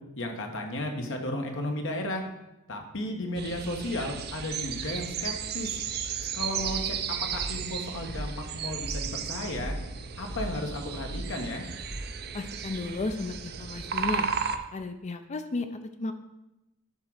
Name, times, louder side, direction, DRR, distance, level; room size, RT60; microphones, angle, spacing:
voice 1, 0.2-2.2 2.7-5.7 6.3-7.0 7.3-9.8 10.2-11.7, left 1 dB, 60° left, 3 dB, 1.3 m, -34 dB
sound 1, 3.4-14.6, right 7 dB, 45° right, 0.6 m, -34 dB
sound 2, 6.6-12.4, equal, 5° left, 1.5 m, -40 dB
voice 2, 12.3-14.3 14.5-16.1, left 3 dB, 30° left, 9 dB, 0.5 m, -34 dB
9.7 x 3.7 x 6.3 m, 0.94 s
head